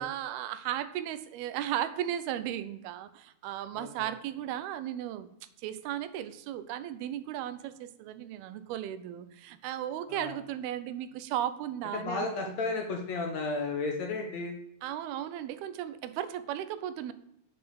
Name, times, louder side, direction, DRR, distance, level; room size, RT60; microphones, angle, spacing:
voice 1, 0.0-5.3 5.6-12.7 14.8-17.1, right 11 dB, 85° right, 13 dB, 2.7 m, -36 dB
voice 2, 3.7-4.1 10.1-10.4 11.9-14.6, left 3 dB, 60° left, 2 dB, 2.0 m, -33 dB
8.1 x 7.3 x 7.9 m, 0.78 s
omnidirectional pair, 4.4 m